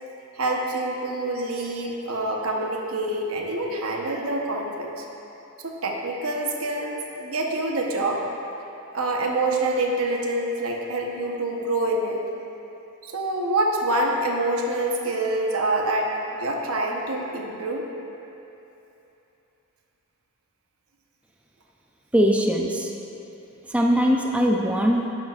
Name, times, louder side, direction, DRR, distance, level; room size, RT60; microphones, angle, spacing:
voice 1, 0.3-5.0 5.6-8.2 8.9-12.2 13.0-17.9, right 2 dB, 80° right, 0 dB, 1.0 m, -26 dB
voice 2, 22.1-22.9 23.7-25.1, equal, 5° right, -1 dB, 0.5 m, -21 dB
10.5 x 10.5 x 2.5 m, 3.0 s
head